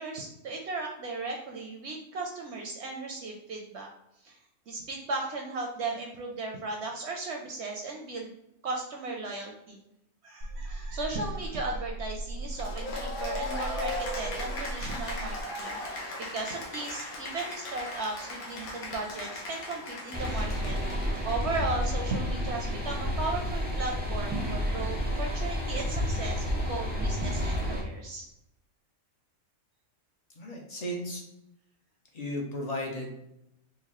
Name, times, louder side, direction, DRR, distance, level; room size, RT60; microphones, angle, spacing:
voice 1, 0.0-3.9 4.2-4.4 4.7-8.3 8.6-9.8 10.2-28.2, right 3 dB, 65° right, 1 dB, 0.7 m, -36 dB
sound 1, 10.4-15.4, right 2 dB, 85° right, 1.1 m, -37 dB
Cheering / Applause, 12.5-22.1, left 2 dB, 85° left, 1.3 m, -38 dB
sound 2, 20.1-27.8, equal, 15° right, 0.3 m, -30 dB
voice 2, 30.4-31.2 32.1-33.1, left 1 dB, 55° left, 0 dB, 0.4 m, -34 dB
3.9 x 2.5 x 2.9 m, 0.82 s
omnidirectional pair, 1.5 m